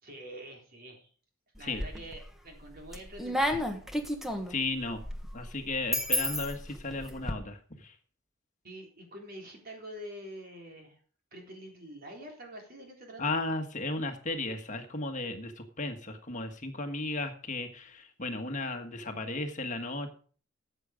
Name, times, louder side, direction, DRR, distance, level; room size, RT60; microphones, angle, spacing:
voice 1, 0.0-1.1 1.6-3.6 8.6-11.0 11.3-13.4, equal, 50° right, 1 dB, 3.8 m, -46 dB
sound 1, 1.6-2.3 2.7-7.3, left 1 dB, ahead, 1.4 m, -32 dB
voice 2, 4.5-5.0 5.3-7.9 13.2-20.1, left 2 dB, 40° left, 6 dB, 1.5 m, -35 dB
14.0 x 8.0 x 5.1 m, 0.42 s
head